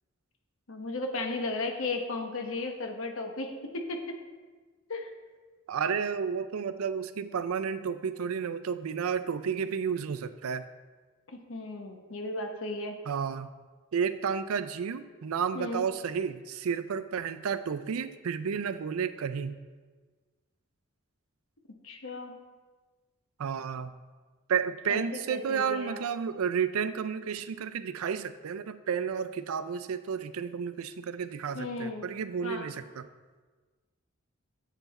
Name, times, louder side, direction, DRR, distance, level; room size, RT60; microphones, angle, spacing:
voice 1, 0.7-4.1 4.9-5.1 11.3-12.9 15.5-15.8 21.8-22.3 24.9-26.0 31.5-32.1 32.4-32.7, left 2 dB, 70° left, 4 dB, 1.0 m, -35 dB
voice 2, 5.7-10.7 13.1-13.5 13.9-19.6 23.4-23.9 24.5-33.1, right 6 dB, 85° right, 12 dB, 0.4 m, -31 dB
8.2 x 5.7 x 4.1 m, 1.4 s
head